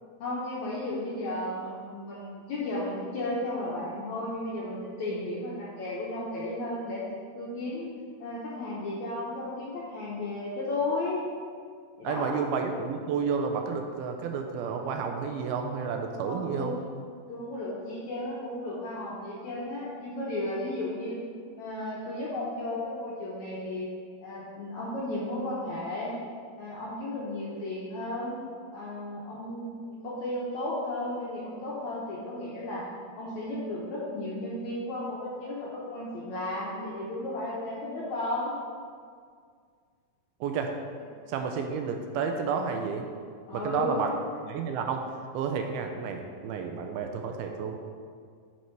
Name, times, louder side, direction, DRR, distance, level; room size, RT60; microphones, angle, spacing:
voice 1, 0.2-7.0 7.4-7.9 8.2-11.2 12.0-12.5 16.2-16.8 17.3-21.2 21.6-23.9 24.2-26.1 26.6-28.4 28.7-32.8 33.2-38.6 43.5-44.2, left 1 dB, 70° left, -7 dB, 1.8 m, -34 dB
voice 2, 12.0-16.8 40.4-40.7 41.3-43.0 43.5-44.1 44.5-45.1 45.3-47.8, right 6 dB, 85° right, 4 dB, 2.4 m, -31 dB
9.9 x 4.5 x 4.6 m, 2.1 s
omnidirectional pair, 4.5 m